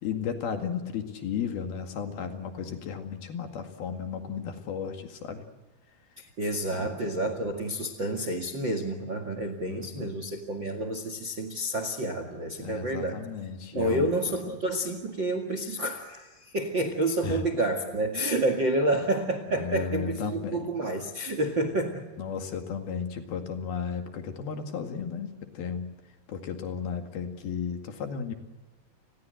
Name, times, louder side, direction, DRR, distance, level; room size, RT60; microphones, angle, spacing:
voice 1, 0.0-5.4 6.7-7.0 7.5-7.6 9.7-10.1 12.6-14.1 14.4-14.6 17.2-17.4 19.5-20.7 22.2-25.9 26.3-28.3, left 6 dB, 65° left, 6 dB, 3.8 m, -34 dB
voice 2, 6.2-13.2 13.7-22.1, right 1 dB, 40° right, 9 dB, 1.7 m, -29 dB
30.0 x 21.0 x 7.8 m, 1.2 s
omnidirectional pair, 5.0 m